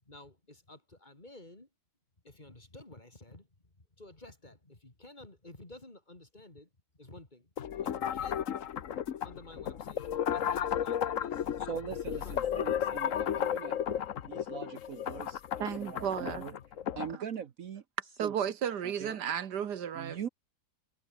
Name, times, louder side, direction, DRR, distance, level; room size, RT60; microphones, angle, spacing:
voice 1, 0.0-1.7 2.2-6.7 6.9-7.5 7.8-8.4 9.2-11.6 12.1-12.4, left 2 dB, 25° left, 3.3 m, -53 dB
sound 1, 7.6-17.2, left 9 dB, 55° left, 1.2 m, -34 dB
voice 2, 11.6-16.5 17.0-17.8 18.2-18.3 18.8-19.2 19.9-20.3, right 8 dB, 60° right, 1.3 m, -42 dB
voice 3, 15.6-16.4 18.2-20.2, right 8 dB, 80° right, 1.8 m, -33 dB
omnidirectional pair, 1.8 m